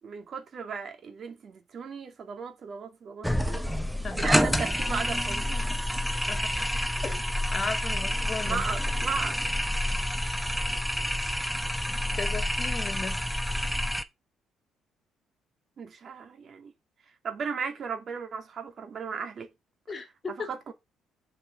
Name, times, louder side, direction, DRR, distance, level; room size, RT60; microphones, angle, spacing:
voice 1, 0.0-3.7 4.1-5.7 8.4-9.4 15.8-16.7 17.2-19.5 20.4-20.7, right 5 dB, 45° right, 2.4 m, -36 dB
sound 1, 3.2-14.0, equal, ahead, 0.8 m, -28 dB
voice 2, 6.3-8.6 12.1-13.2 19.9-20.5, left 4 dB, 30° left, 2.4 m, -36 dB
7.4 x 5.1 x 6.4 m
cardioid pair, 120°, 0 cm